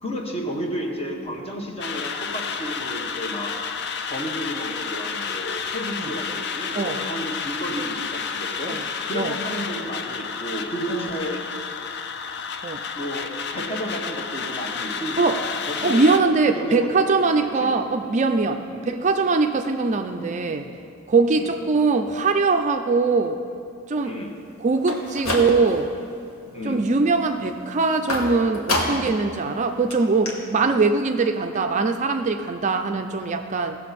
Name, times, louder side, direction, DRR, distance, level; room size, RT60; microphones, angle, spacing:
voice 1, 0.0-3.6 4.0-8.8 9.1-11.5 12.9-17.7 18.7-18.9 21.3-21.6 24.0-24.4 26.5-26.9, equal, 30° left, 0 dB, 1.3 m, -32 dB
sound 1, 1.8-16.2, left 6 dB, 50° left, 0.6 m, -31 dB
voice 2, 15.8-18.6 18.9-20.7 21.1-23.4 23.9-24.1 24.6-25.9 26.6-33.8, right 3 dB, 35° right, 6 dB, 0.4 m, -21 dB
sound 2, 24.8-25.9 26.3-26.8 28.1-29.2 29.5-29.6 29.9-30.0 30.3-30.4, left 1 dB, 75° left, 1.7 m, -27 dB
17.0 x 6.9 x 4.2 m, 2.6 s
head